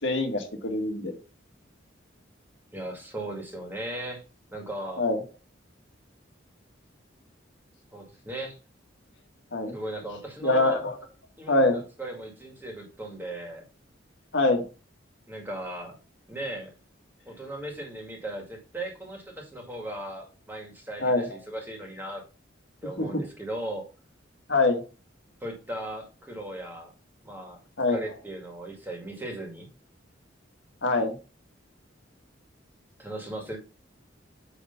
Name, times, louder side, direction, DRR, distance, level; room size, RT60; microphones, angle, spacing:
voice 1, 0.0-1.1 5.0-5.2 9.5-9.7 10.4-10.9 11.5-11.8 14.3-14.6 21.0-21.3 23.0-23.2 24.5-24.8 27.8-28.0 30.8-31.1, left 2 dB, 70° left, 3 dB, 1.7 m, -24 dB
voice 2, 2.7-4.2 4.5-5.0 7.9-8.6 9.7-10.8 11.4-13.7 15.3-16.0 16.3-16.7 17.3-22.2 22.8-23.9 25.4-26.9 27.2-27.6 27.9-29.7 33.0-33.6, right 1 dB, 10° right, 1 dB, 2.0 m, -37 dB
9.0 x 3.5 x 5.6 m, 0.33 s
head